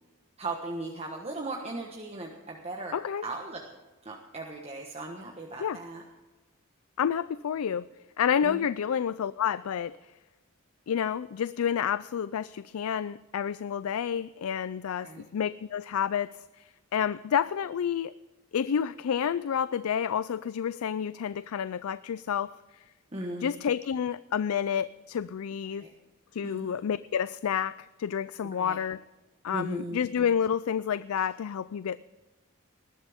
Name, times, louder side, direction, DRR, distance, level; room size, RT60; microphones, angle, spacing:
voice 1, 0.4-2.9 3.2-3.6 4.0-6.0 8.4-8.6 15.0-15.2 23.1-23.5 25.7-25.9 26.4-26.7 28.4-28.8 29.5-30.0, right 2 dB, 30° right, 0 dB, 1.3 m, -37 dB
voice 2, 2.9-3.2 5.6-5.8 7.0-7.9 8.2-10.0 10.9-18.1 18.5-22.5 23.4-25.8 26.3-29.0 29.4-32.0, left 8 dB, 90° left, 16 dB, 0.4 m, -29 dB
19.5 x 12.5 x 3.6 m, 1.2 s
head